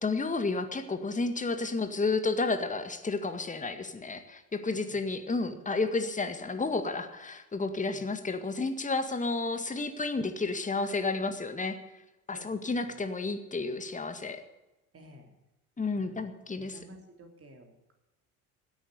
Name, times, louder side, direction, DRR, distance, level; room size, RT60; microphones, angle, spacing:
voice 1, 0.0-11.8 12.3-14.4 15.8-16.8, left 3 dB, 15° left, 7 dB, 1.9 m, -31 dB
voice 2, 4.7-5.1 7.9-8.1 12.3-12.6 12.9-13.0 14.9-15.3 15.9-17.9, right 1 dB, 30° right, 4 dB, 3.5 m, -53 dB
16.5 x 8.7 x 8.2 m, 1.0 s
figure-of-eight pair, 65°, 45 cm